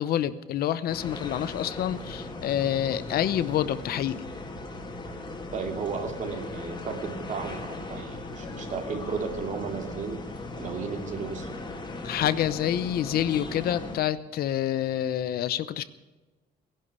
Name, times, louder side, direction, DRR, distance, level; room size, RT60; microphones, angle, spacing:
voice 1, 0.0-4.2 12.0-15.8, left 11 dB, 65° left, 14 dB, 0.8 m, -27 dB
sound 1, 0.9-14.0, left 2 dB, 25° left, 2.5 m, -38 dB
voice 2, 5.5-10.2 10.6-11.6, right 5 dB, 45° right, 4 dB, 2.7 m, -34 dB
18.5 x 11.5 x 6.9 m, 1.2 s
cardioid pair, 155°, 17 cm